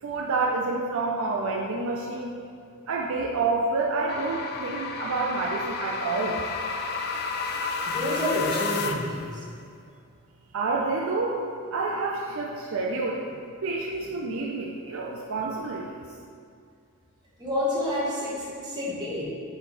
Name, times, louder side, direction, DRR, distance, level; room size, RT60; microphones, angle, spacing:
voice 1, 0.0-2.4 2.9-6.4 10.5-11.4 11.7-13.2 13.6-15.9, right 3 dB, 65° right, -1 dB, 0.5 m, -28 dB
sound 1, 4.1-9.2, left 4 dB, 45° left, 0.4 m, -31 dB
voice 2, 7.9-9.4 17.4-19.2, left 1 dB, 20° right, -7 dB, 1.6 m, -29 dB
9.0 x 3.4 x 4.2 m, 2.3 s
head